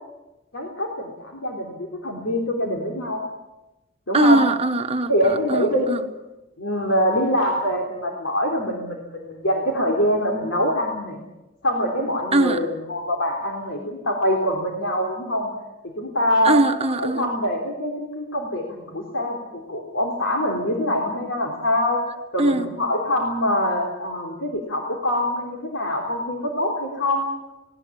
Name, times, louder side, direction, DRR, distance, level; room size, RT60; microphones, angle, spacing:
voice 1, 0.5-3.2 4.1-4.4 5.1-5.9 6.6-11.2 11.6-15.5 16.0-16.6 17.0-22.0 22.3-27.3, equal, 75° left, 3.5 m, -24 dB
voice 2, 4.1-6.0 12.3-12.6 16.4-17.3 22.4-22.7, right 2 dB, 30° right, 1.3 m, -21 dB
19.0 x 18.5 x 8.7 m
head